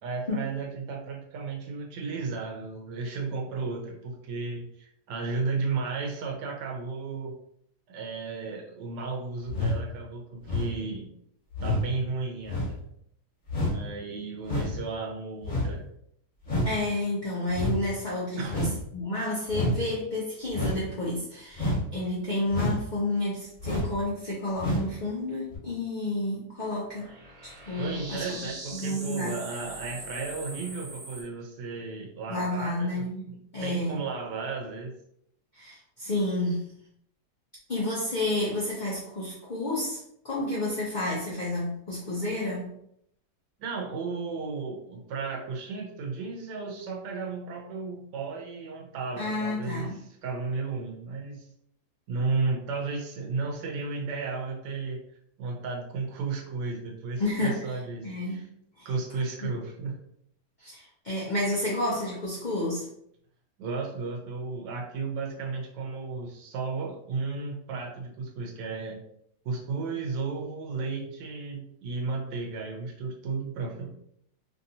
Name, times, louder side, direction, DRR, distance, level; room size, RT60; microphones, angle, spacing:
voice 1, 0.0-7.3 7.9-11.1 11.6-12.8 13.7-15.9 18.4-18.6 27.8-35.0 43.6-51.5 52.1-55.0 55.4-58.5 58.8-59.9 63.6-69.0 69.4-74.0, right 4 dB, 85° right, 0 dB, 1.2 m, -34 dB
sound 1, 9.5-9.8 10.5-10.8 11.5-11.8 12.5-12.7 13.5-13.8 14.4-14.8 15.4-15.7 16.4-16.7 17.5-17.8 18.5-18.8 19.5-19.8 20.5-20.8 21.5-21.8 22.5-22.8 23.6-23.9 24.6-24.9 25.5-25.6, left 1 dB, 35° left, 1.0 m, -28 dB
voice 2, 16.6-27.1 27.7-28.5 28.7-29.4 32.3-34.0 35.5-36.7 37.7-40.0 40.2-42.7 49.2-50.0 57.2-57.7 58.0-58.5 58.8-58.9 59.4-59.5 60.6-62.9, left 1 dB, 65° left, -6 dB, 0.4 m, -30 dB
sound 2, 26.9-31.2, right 2 dB, 65° right, 1.3 m, -42 dB
3.1 x 2.7 x 2.6 m, 0.72 s
omnidirectional pair, 1.8 m